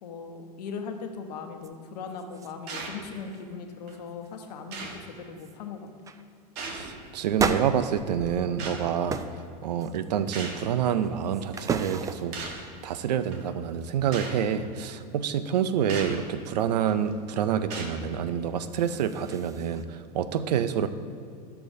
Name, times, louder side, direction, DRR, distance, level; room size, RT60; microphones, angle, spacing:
voice 1, 0.0-5.8, left 5 dB, 75° left, 5 dB, 1.0 m, -39 dB
sound 1, 1.6-1.7 2.1-2.9 3.2-3.5 3.9-4.3 4.9-5.0 5.4-5.6 6.0-6.2 7.4-8.7 9.1-9.4 9.8-10.3 10.8-12.5 18.5-19.8, right 5 dB, 15° right, 0.4 m, -34 dB
sound 2, 2.7-3.0 3.9-4.0 4.7-5.0 6.6-7.0 8.6-8.8 10.3-10.6 11.5-11.7 12.3-12.6 13.3-13.4 14.1-14.4 15.9-16.2 16.9-17.1 17.7-18.0, right 4 dB, 50° right, 1.4 m, -37 dB
voice 2, 6.6-9.2 9.6-20.9, right 8 dB, 85° right, 12 dB, 0.5 m, -28 dB
12.5 x 6.8 x 2.7 m, 2.5 s
hypercardioid pair, 110°, 21 cm